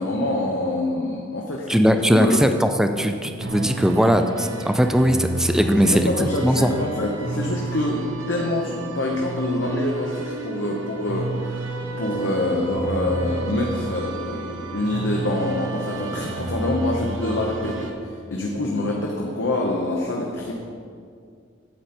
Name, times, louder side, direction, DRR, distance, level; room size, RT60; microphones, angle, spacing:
voice 1, 0.0-1.8 2.1-2.4 5.8-11.7 12.0-20.5, left 1 dB, 65° left, -1 dB, 0.9 m, -25 dB
voice 2, 1.7-6.7, equal, 5° right, 6 dB, 0.3 m, -19 dB
sound 1, 3.4-17.9, right 3 dB, 80° right, 0.9 m, -31 dB
8.8 x 8.0 x 4.3 m, 2.2 s
head